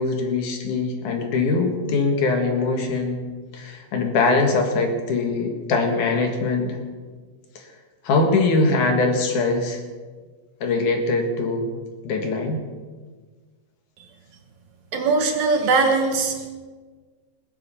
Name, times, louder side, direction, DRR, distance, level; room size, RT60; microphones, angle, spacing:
voice 1, 0.0-3.2 3.5-6.8 7.6-7.7 8.0-9.8 10.6-11.7 12.0-12.6, left 3 dB, 70° left, 3 dB, 3.1 m, -22 dB
voice 2, 14.9-16.5, right 4 dB, 65° right, 4 dB, 2.5 m, -20 dB
20.0 x 8.1 x 6.8 m, 1.4 s
omnidirectional pair, 3.8 m